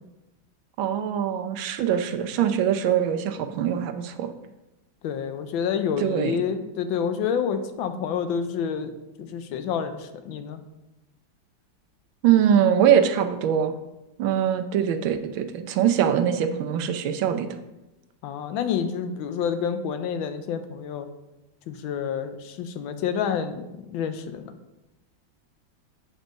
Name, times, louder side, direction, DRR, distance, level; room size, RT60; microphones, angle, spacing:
voice 1, 0.8-4.3 6.0-6.4 12.2-13.7 14.2-17.5, right 9 dB, 85° right, 7 dB, 1.4 m, -23 dB
voice 2, 5.0-8.9 9.2-10.6 18.2-21.1 21.7-24.5, left 7 dB, 80° left, 9 dB, 1.4 m, -28 dB
7.9 x 4.4 x 5.1 m, 1.0 s
omnidirectional pair, 2.1 m